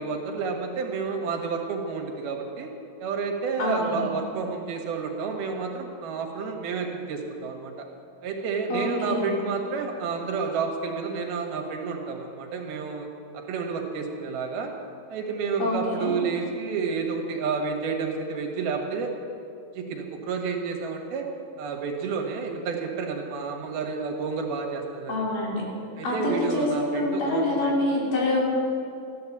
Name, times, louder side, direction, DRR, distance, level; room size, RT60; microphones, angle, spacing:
voice 1, 0.0-2.7 3.0-7.9 8.2-13.1 13.5-14.7 15.1-19.1 19.7-21.3 21.6-25.3 26.0-27.7, right 5 dB, 85° right, 3 dB, 3.5 m, -30 dB
voice 2, 3.6-4.0 8.7-9.4 15.6-16.1 25.1-25.6 26.0-26.7 27.0-28.4, left 1 dB, 65° left, -3 dB, 4.8 m, -26 dB
14.5 x 11.5 x 7.2 m, 2.5 s
omnidirectional pair, 4.2 m